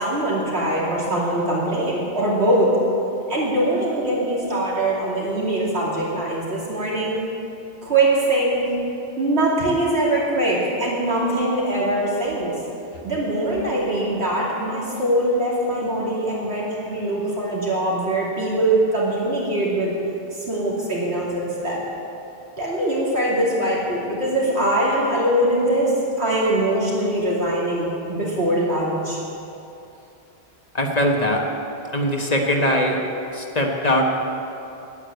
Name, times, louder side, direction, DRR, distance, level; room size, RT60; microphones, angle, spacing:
voice 1, 0.0-2.7 3.3-7.2 7.8-8.6 9.2-12.5 13.0-19.9 20.3-21.8 22.6-29.2, right 1 dB, 85° right, -5 dB, 3.0 m, -22 dB
voice 2, 30.7-31.4 31.9-33.0 33.3-34.0, left 1 dB, 40° left, 1 dB, 1.2 m, -21 dB
9.8 x 9.7 x 7.9 m, 2.8 s
omnidirectional pair, 1.1 m